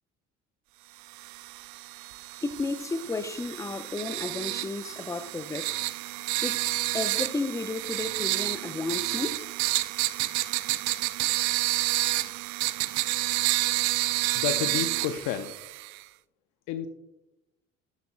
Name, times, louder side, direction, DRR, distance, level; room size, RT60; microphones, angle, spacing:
sound 1, 1.1-16.0, right 20 dB, 55° right, 0.4 m, -30 dB
voice 1, 2.4-5.8 6.4-6.6 6.9-9.5, left 3 dB, 10° left, 0.5 m, -33 dB
voice 2, 14.3-15.5 16.7-16.9, left 10 dB, 55° left, 0.6 m, -30 dB
10.5 x 7.2 x 2.4 m
figure-of-eight pair, 55°, 36 cm